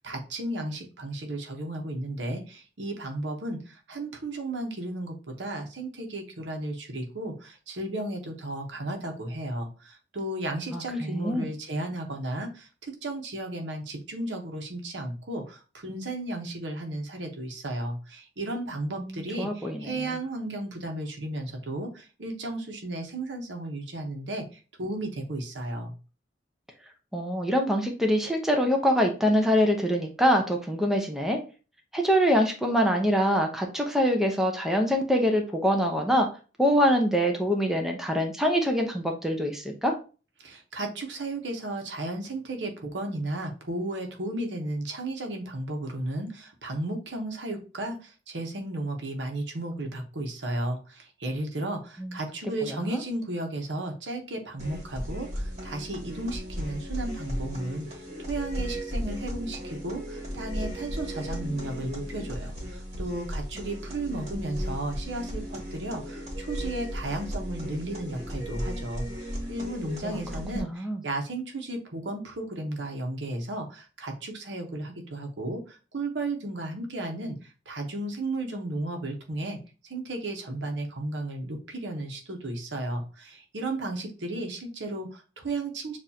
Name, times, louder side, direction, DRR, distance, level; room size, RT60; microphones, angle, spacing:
voice 1, 0.0-25.9 40.4-79.6 79.8-86.0, right 1 dB, 90° right, 4 dB, 1.1 m, -34 dB
voice 2, 10.7-11.5 19.0-20.1 27.1-31.4 31.9-36.3 36.6-39.9 52.0-52.2 52.6-53.0 70.0-70.2 70.5-71.0, equal, 5° right, 2 dB, 0.7 m, -25 dB
sound 1, 54.6-70.6, equal, 40° right, 1.5 m, -35 dB
6.9 x 2.7 x 2.8 m, 0.34 s
head